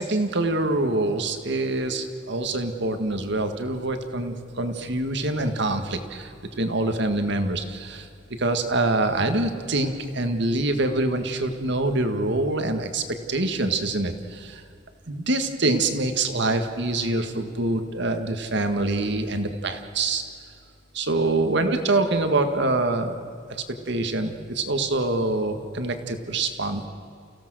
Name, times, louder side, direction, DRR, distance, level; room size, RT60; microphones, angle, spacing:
voice 1, 0.0-8.1 8.4-13.0 13.3-14.6 15.1-20.2 20.9-23.2 23.9-26.9, right 2 dB, 65° right, 7 dB, 1.8 m, -25 dB
29.5 x 16.5 x 6.3 m, 2.5 s
head